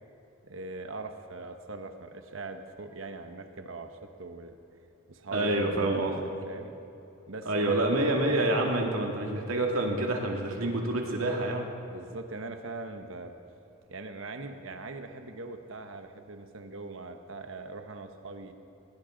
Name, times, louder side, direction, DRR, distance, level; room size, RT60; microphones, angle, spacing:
voice 1, 0.4-4.6 5.1-6.2 6.5-6.7 7.3-8.1 11.9-13.3 13.9-18.5, right 3 dB, 65° right, 6 dB, 1.0 m, -41 dB
voice 2, 5.3-6.2 7.5-11.7, right 1 dB, 85° right, 0 dB, 2.4 m, -27 dB
19.5 x 17.5 x 3.9 m, 2.8 s
head